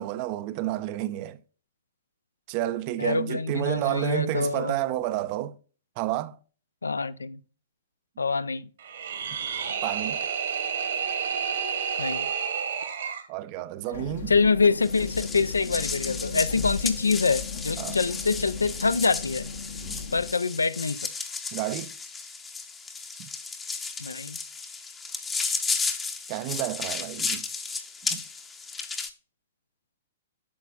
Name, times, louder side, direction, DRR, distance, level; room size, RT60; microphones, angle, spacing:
voice 1, 0.0-1.4 2.5-5.6 6.0-6.4 9.8-10.2 13.3-14.3 17.8-18.0 19.8-20.0 21.5-21.9 23.2-23.3 26.3-27.5 28.0-28.2, right 13 dB, 35° right, 0.4 m, -30 dB
voice 2, 3.0-4.7 6.8-7.4 8.2-8.7 12.0-12.3 14.3-19.5 20.1-21.1 24.0-24.4, left 4 dB, 75° left, 0.3 m, -25 dB
sound 1, 8.8-13.3, right 7 dB, 60° right, 1.3 m, -30 dB
sound 2, 13.9-20.3, left 5 dB, 60° left, 0.8 m, -37 dB
sound 3, 14.8-29.1, left 4 dB, 15° left, 0.7 m, -34 dB
8.3 x 6.0 x 2.4 m
figure-of-eight pair, 110°, 0 cm